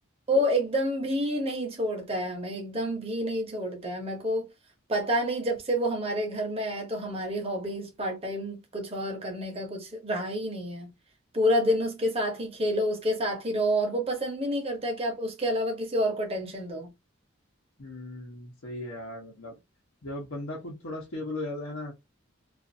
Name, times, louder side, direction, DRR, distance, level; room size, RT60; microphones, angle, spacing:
voice 1, 0.3-4.5 4.9-10.9 11.3-16.9, equal, 30° right, 0.8 m, -28 dB
voice 2, 17.8-19.6 20.0-21.9, left 2 dB, 75° left, 0.9 m, -37 dB
2.5 x 2.5 x 2.6 m
head